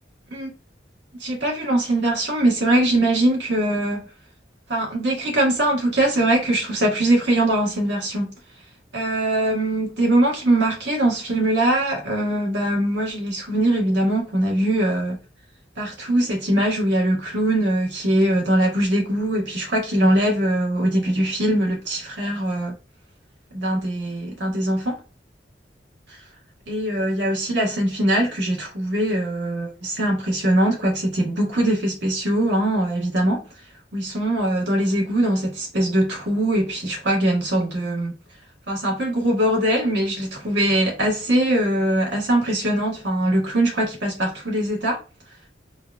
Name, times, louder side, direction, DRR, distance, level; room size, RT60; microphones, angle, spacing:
voice 1, 1.2-4.0 4.7-8.3 8.9-15.2 15.8-22.7 23.5-25.0 26.7-33.5 33.9-38.1 38.7-45.0, right 1 dB, 75° right, 1.3 m, -22 dB
3.3 x 2.4 x 2.2 m
head